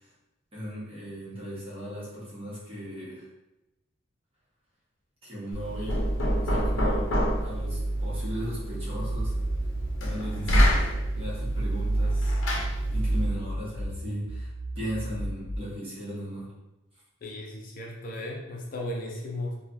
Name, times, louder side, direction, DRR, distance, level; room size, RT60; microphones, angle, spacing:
voice 1, 0.5-3.3 5.2-6.0 6.4-9.3 10.0-10.7 11.1-12.4 12.9-16.5, equal, 30° right, -8 dB, 1.1 m, -37 dB
Knock, 5.5-13.4, right 1 dB, 90° left, 0.6 m, -26 dB
sound 1, 9.4-12.1 12.5-15.6, right 1 dB, 80° right, 0.5 m, -36 dB
voice 2, 17.2-19.6, left 1 dB, 45° left, -1 dB, 0.4 m, -35 dB
3.2 x 2.2 x 2.5 m, 0.97 s
head